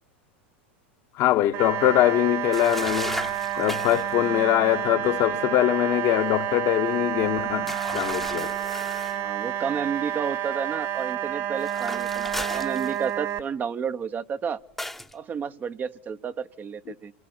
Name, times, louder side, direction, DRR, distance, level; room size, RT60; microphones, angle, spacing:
voice 1, 1.2-8.5, left 14 dB, 50° left, 1.2 m, -23 dB
sound 1, 1.5-13.4, right 11 dB, 55° right, 2.5 m, -29 dB
sound 2, 2.5-4.1 7.7-9.2 11.6-13.3 14.8-15.1, left 1 dB, 5° left, 1.0 m, -36 dB
voice 2, 9.1-14.6 15.1-17.1, right 7 dB, 30° right, 0.9 m, -31 dB
28.0 x 19.0 x 9.7 m
hypercardioid pair, 100°, 6 cm